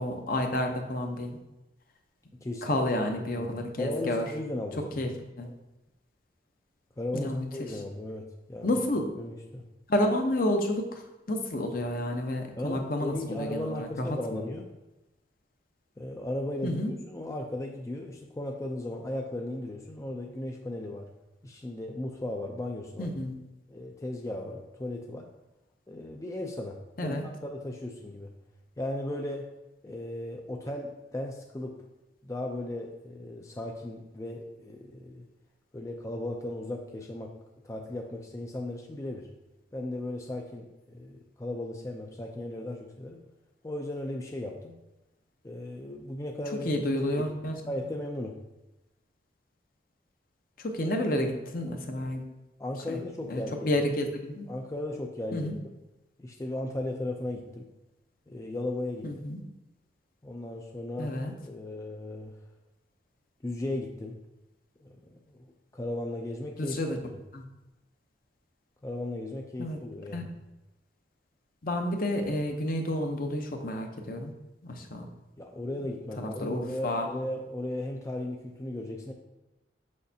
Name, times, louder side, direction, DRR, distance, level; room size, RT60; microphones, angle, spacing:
voice 1, 0.0-1.4 2.6-4.3 5.0-5.1 5.4-5.5 7.1-7.8 8.6-9.0 9.9-11.0 11.3-14.2 16.6-16.9 23.0-23.3 27.0-27.3 46.6-47.5 50.6-52.2 52.9-53.0 53.3-54.5 55.3-55.6 59.0-59.4 61.0-61.3 66.6-67.0 67.3-67.4 69.6-69.8 70.1-70.2 71.6-74.3 74.6-75.1 76.2-77.1, left 1 dB, 50° left, 4 dB, 0.7 m, -30 dB
voice 2, 2.4-2.8 3.2-5.0 7.0-9.6 12.6-14.7 16.0-16.8 17.1-21.1 21.4-23.1 23.7-25.3 25.9-28.3 28.8-29.5 29.8-31.8 32.2-35.3 35.7-37.3 37.6-39.3 39.7-43.2 43.6-44.8 45.4-46.7 47.0-48.4 52.6-53.7 54.5-55.8 56.2-57.7 58.3-59.1 60.2-61.2 61.4-62.3 63.4-64.2 64.8-65.0 65.3-66.8 67.1-67.2 68.8-70.3 75.4-79.1, left 1 dB, 15° left, 1 dB, 0.4 m, -36 dB
6.4 x 5.9 x 2.8 m, 0.99 s
head